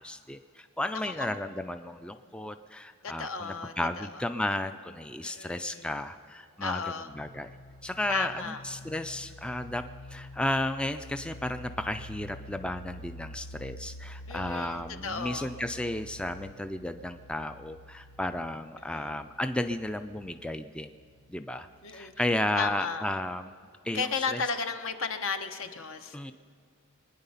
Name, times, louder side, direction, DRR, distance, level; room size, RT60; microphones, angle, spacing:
voice 1, 0.0-7.5 7.8-20.9 21.3-21.7 21.9-23.5 23.8-24.4 26.1-26.3, left 1 dB, 5° left, 9 dB, 0.3 m, -33 dB
voice 2, 1.0-1.4 3.0-4.1 5.2-5.9 6.6-7.1 8.1-8.6 14.3-15.5 18.9-19.1 21.8-22.1 22.5-23.0 23.9-26.3, left 5 dB, 70° left, 7 dB, 1.0 m, -34 dB
sound 1, 7.1-22.5, left 1 dB, 90° left, 0.7 m, -48 dB
23.0 x 9.9 x 5.6 m, 2.2 s
head